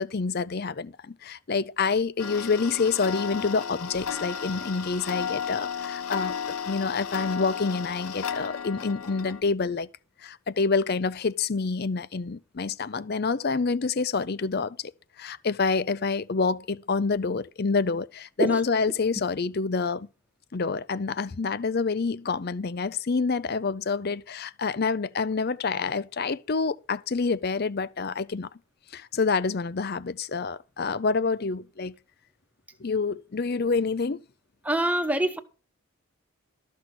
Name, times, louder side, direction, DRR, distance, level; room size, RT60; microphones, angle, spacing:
voice 1, 0.0-6.4 6.7-9.9 10.2-14.9 15.2-20.1 20.5-28.5 28.9-31.9 32.8-34.2, left 4 dB, 45° left, 0.5 m, -27 dB
Tick-tock, 2.2-9.4, left 7 dB, 85° left, 1.1 m, -34 dB
voice 2, 34.6-35.4, right 1 dB, 5° right, 1.0 m, -24 dB
13.0 x 6.2 x 6.0 m
head